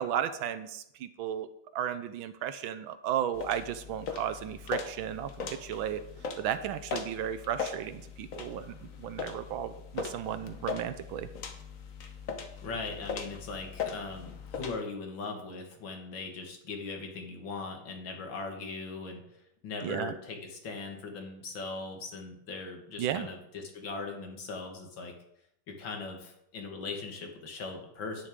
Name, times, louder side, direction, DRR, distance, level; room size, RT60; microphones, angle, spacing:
voice 1, 0.0-6.0 6.4-11.3 19.8-20.2 23.0-23.3, right 10 dB, 75° right, 12 dB, 1.3 m, -34 dB
sound 1, 3.3-14.8, left 5 dB, 50° left, 1.2 m, -40 dB
voice 2, 12.6-25.1 25.7-28.3, left 4 dB, 65° left, 3 dB, 2.3 m, -40 dB
10.5 x 9.9 x 3.6 m, 0.79 s
omnidirectional pair, 2.3 m